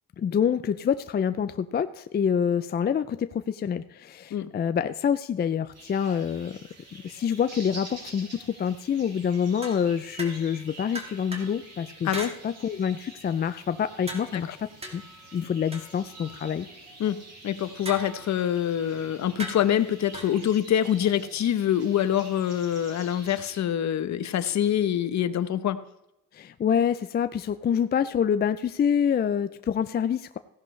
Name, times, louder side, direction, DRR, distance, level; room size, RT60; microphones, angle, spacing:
voice 1, 0.2-6.6 7.0-15.0 15.3-16.7 26.3-30.4, left 8 dB, 30° left, 11 dB, 0.4 m, -27 dB
sound 1, 5.7-23.6, right 2 dB, 50° right, 5.0 m, -48 dB
sound 2, 9.6-10.6 10.9-11.6 12.1-12.4 14.1-16.5 17.9-18.5 19.4-20.3, right 1 dB, 20° right, 2.1 m, -39 dB
voice 2, 17.4-25.8, left 10 dB, 55° left, 13 dB, 0.9 m, -25 dB
16.0 x 11.0 x 3.2 m, 0.87 s
cardioid pair, 110°, 33 cm